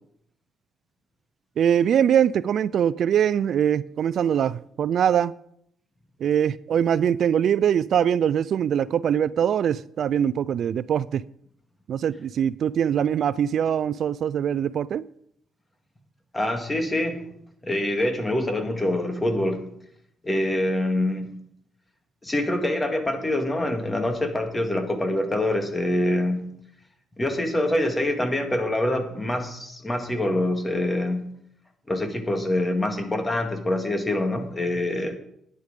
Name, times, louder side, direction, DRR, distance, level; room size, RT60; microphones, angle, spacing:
voice 1, 1.6-5.3 6.2-11.2 11.9-15.0, right 9 dB, 65° right, 19 dB, 0.4 m, -22 dB
voice 2, 16.3-17.3 17.6-19.6 20.2-21.3 22.2-26.5 27.2-31.3 31.9-35.2, left 1 dB, 15° left, 5 dB, 2.2 m, -25 dB
11.5 x 9.9 x 5.2 m, 0.71 s
cardioid pair, 90°, 0 cm